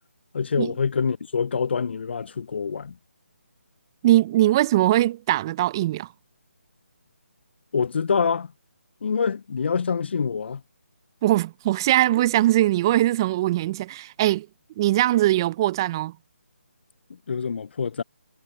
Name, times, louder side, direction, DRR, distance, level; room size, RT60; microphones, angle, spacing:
voice 1, 0.3-2.9 7.7-8.5 9.0-10.6 17.3-18.0, left 6 dB, 55° left, 0.3 m, -25 dB
voice 2, 4.0-6.1 11.2-14.5 14.8-16.1, right 15 dB, 20° right, 0.4 m, -21 dB
figure-of-eight pair, 160°, 7 cm